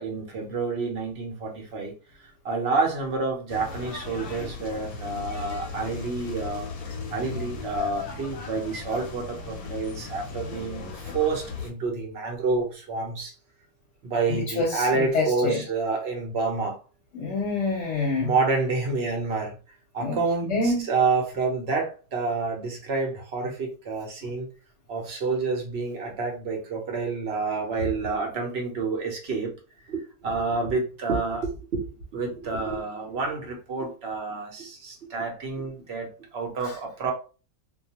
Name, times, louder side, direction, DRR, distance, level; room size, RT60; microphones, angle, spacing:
voice 1, 0.0-1.9 2.4-13.3 14.0-16.8 18.2-19.6 19.9-24.5 24.9-29.5 29.9-31.9 32.1-37.1, right 4 dB, 55° right, 0.9 m, -28 dB
sound 1, 3.5-11.7, left 4 dB, 90° left, 1.1 m, -37 dB
voice 2, 14.3-15.6 17.1-18.3 20.0-20.8 36.6-36.8, left 3 dB, 60° left, 0.9 m, -27 dB
2.3 x 2.3 x 2.8 m
omnidirectional pair, 1.5 m